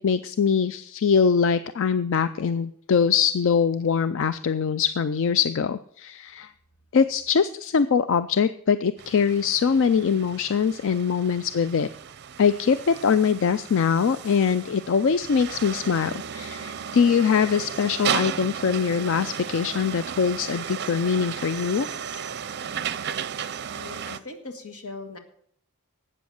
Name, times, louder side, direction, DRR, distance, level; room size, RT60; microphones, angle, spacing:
voice 1, 0.0-6.5 6.9-11.9 12.4-21.9, left 6 dB, 60° left, 13 dB, 0.4 m, -23 dB
sound 1, 9.0-24.2, right 8 dB, 50° right, 0.5 m, -34 dB
voice 2, 23.8-25.2, left 3 dB, 80° left, 6 dB, 1.8 m, -39 dB
12.5 x 8.5 x 6.5 m, 0.68 s
head